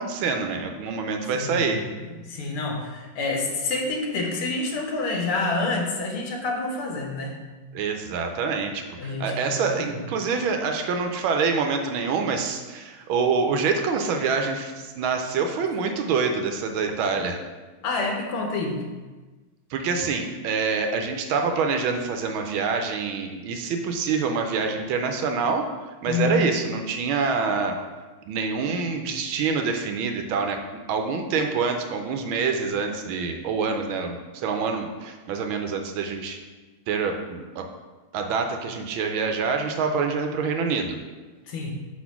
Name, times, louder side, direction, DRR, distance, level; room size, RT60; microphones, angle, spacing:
voice 1, 0.0-1.8 7.7-17.4 19.7-25.7 26.0-27.8 28.3-30.6 30.9-34.2 34.4-36.4 36.9-37.6 38.1-41.0, right 5 dB, 75° right, 5 dB, 1.4 m, -26 dB
voice 2, 1.3-1.9 2.3-7.3 9.0-9.9 17.8-18.8 26.1-26.4 41.5-41.7, left 3 dB, 80° left, 1 dB, 1.9 m, -28 dB
5.4 x 4.2 x 5.8 m, 1.3 s
omnidirectional pair, 2.4 m